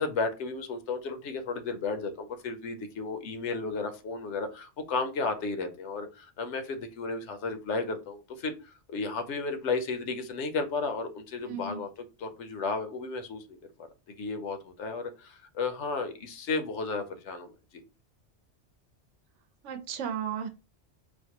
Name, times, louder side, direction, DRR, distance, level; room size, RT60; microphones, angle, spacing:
voice 1, 0.0-11.9 12.2-13.6 14.2-17.5, left 4 dB, 75° left, 7 dB, 0.9 m, -33 dB
voice 2, 11.4-11.8 19.6-20.5, right 7 dB, 85° right, 8 dB, 0.9 m, -34 dB
4.4 x 2.1 x 2.8 m, 0.30 s
omnidirectional pair, 1.2 m